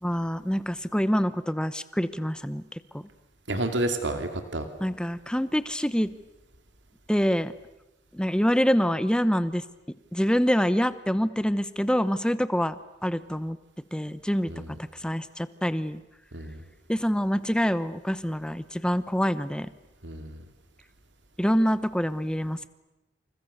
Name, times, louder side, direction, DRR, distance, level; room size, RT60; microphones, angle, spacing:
voice 1, 0.0-3.0 4.8-6.1 7.1-7.5 8.1-9.6 10.1-12.8 13.0-13.6 13.9-14.5 14.9-16.0 16.9-19.7 21.4-22.7, equal, 5° left, 14 dB, 0.9 m, -26 dB
voice 2, 3.5-4.7 14.5-14.7 16.3-16.6 20.0-20.4, right 1 dB, 75° right, 6 dB, 2.5 m, -30 dB
28.5 x 28.0 x 6.7 m, 1.0 s
head